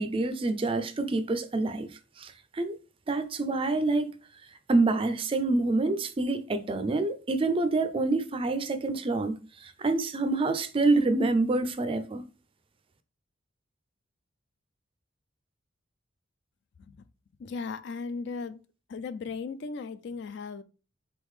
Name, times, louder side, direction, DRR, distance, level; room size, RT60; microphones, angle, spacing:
voice 1, 0.0-1.9 2.2-2.8 3.1-4.1 4.7-12.2, right 3 dB, 25° right, 0.4 m, -27 dB
voice 2, 17.4-18.6 18.9-20.6, left 4 dB, 60° left, 0.3 m, -36 dB
3.9 x 3.6 x 3.2 m
head